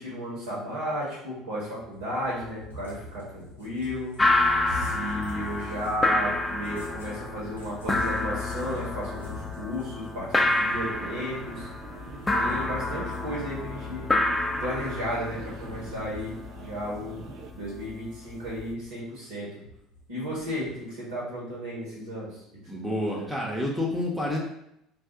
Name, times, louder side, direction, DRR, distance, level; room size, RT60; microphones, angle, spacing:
voice 1, 0.0-4.2 4.7-11.7 12.3-14.1 14.6-17.2 17.5-19.6 20.1-22.4 23.0-23.3, equal, 75° right, -7 dB, 1.4 m, -34 dB
Cat, 1.8-6.0 6.6-12.7 13.1-15.0 15.4-16.4 16.8-16.9 17.5-19.0 19.6-20.8, left 1 dB, 90° left, 0.6 m, -46 dB
sound 1, 4.2-18.7, left 2 dB, 15° left, 0.4 m, -29 dB
sound 2, 10.3-17.5, right 5 dB, 55° right, 0.3 m, -47 dB
voice 2, 22.7-24.4, left 1 dB, ahead, -4 dB, 0.8 m, -29 dB
2.6 x 2.4 x 3.7 m, 0.79 s
figure-of-eight pair, 65°, 0 cm